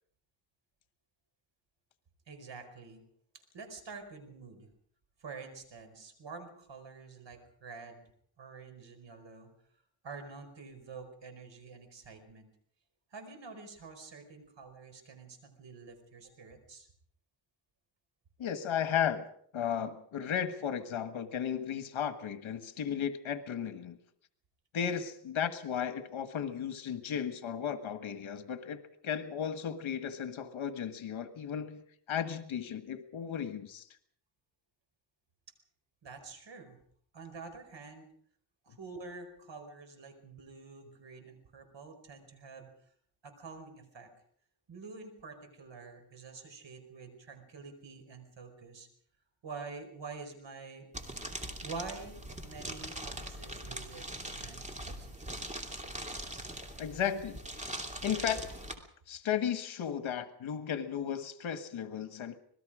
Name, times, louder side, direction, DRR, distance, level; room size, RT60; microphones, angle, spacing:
voice 1, 2.3-3.0 3.3-4.7 5.2-8.1 8.4-9.5 10.0-12.5 13.1-16.9 36.0-36.8 37.1-38.1 38.6-42.7 43.2-44.1 44.7-48.9 49.4-50.9 51.6-55.5, right 4 dB, 65° right, 6 dB, 5.0 m, -47 dB
voice 2, 18.4-19.3 19.5-24.0 24.7-31.8 32.1-33.9 56.8-58.4 59.1-62.4, left 8 dB, 75° left, 9 dB, 1.7 m, -35 dB
sound 1, 50.9-58.7, right 1 dB, 15° right, 2.7 m, -41 dB
26.0 x 20.5 x 5.0 m, 0.63 s
wide cardioid pair, 120°, 47 cm